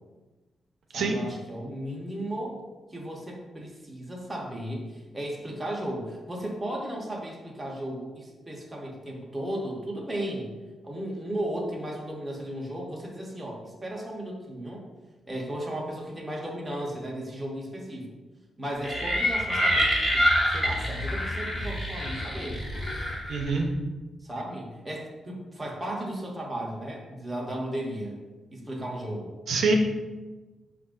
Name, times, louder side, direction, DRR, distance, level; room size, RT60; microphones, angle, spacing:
voice 1, 0.9-2.6 2.9-10.5 10.8-14.8 15.3-18.1 18.6-22.6 24.2-28.2 28.5-29.4, right 1 dB, 10° right, -2 dB, 0.8 m, -35 dB
sound 1, 18.8-23.6, equal, 20° left, 0.8 m, -27 dB
voice 2, 23.3-23.7 29.5-29.7, right 4 dB, 70° right, 1 dB, 0.6 m, -25 dB
5.4 x 2.4 x 3.6 m, 1.2 s
wide cardioid pair, 150°, 0 cm